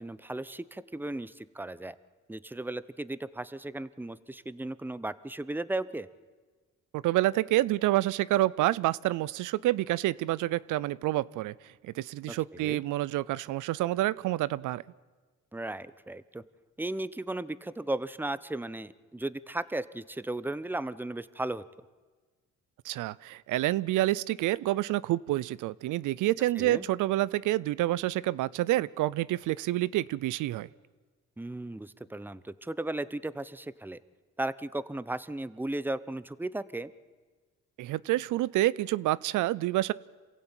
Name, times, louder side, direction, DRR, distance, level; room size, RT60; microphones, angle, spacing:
voice 1, 0.0-2.0 2.3-6.1 12.3-12.8 15.5-16.4 16.8-21.6 26.6-26.9 31.4-34.0 34.4-36.9, right 2 dB, 5° right, 16 dB, 0.8 m, -36 dB
voice 2, 6.9-11.5 11.8-14.8 22.8-30.7 37.8-39.9, right 16 dB, 85° right, 21 dB, 0.6 m, -28 dB
27.0 x 16.0 x 9.0 m, 1.4 s
cardioid pair, 90°, 30 cm